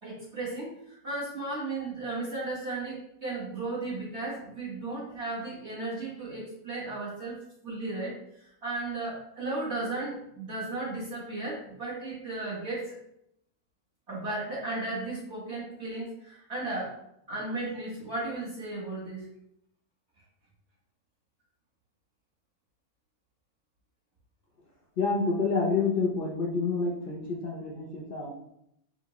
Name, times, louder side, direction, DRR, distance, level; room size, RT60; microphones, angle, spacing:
voice 1, 0.0-7.4 7.6-13.0 14.1-16.9 17.3-19.3, right 2 dB, 50° right, -7 dB, 1.5 m, -35 dB
voice 2, 25.0-28.3, left 4 dB, 55° left, -2 dB, 0.6 m, -28 dB
5.2 x 2.5 x 3.0 m, 0.77 s
omnidirectional pair, 1.6 m